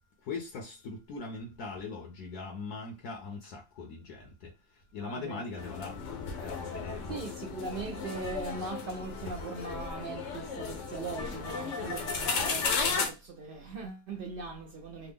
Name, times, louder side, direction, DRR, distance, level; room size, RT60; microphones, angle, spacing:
voice 1, 0.3-4.5 4.9-5.9 6.4-7.3, left 4 dB, 75° left, 1.3 m, -40 dB
voice 2, 5.0-5.4 7.1-15.1, right 3 dB, 70° right, 0.5 m, -40 dB
sound 1, 5.6-13.1, left 4 dB, 60° left, 0.9 m, -34 dB
3.4 x 2.1 x 3.4 m
omnidirectional pair, 1.6 m